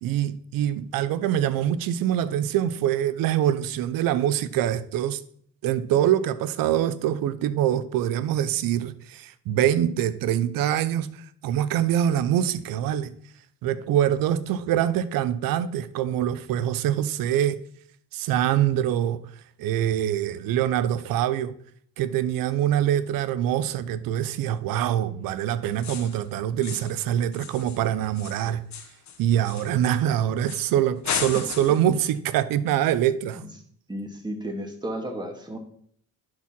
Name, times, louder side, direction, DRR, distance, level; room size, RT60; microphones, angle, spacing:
voice 1, 0.0-5.2 5.6-11.2 11.4-13.1 13.6-17.6 18.1-19.2 19.6-21.5 22.0-28.6 29.2-33.4, right 11 dB, 80° right, 0.7 m, -24 dB
sound 1, 25.8-26.2 26.6-27.0 27.3-30.0 30.5-30.7 31.0-31.9, left 7 dB, 55° left, 1.6 m, -35 dB
voice 2, 33.9-35.6, right 1 dB, 15° right, 2.4 m, -33 dB
11.0 x 4.8 x 5.9 m
cardioid pair, 80°, 33 cm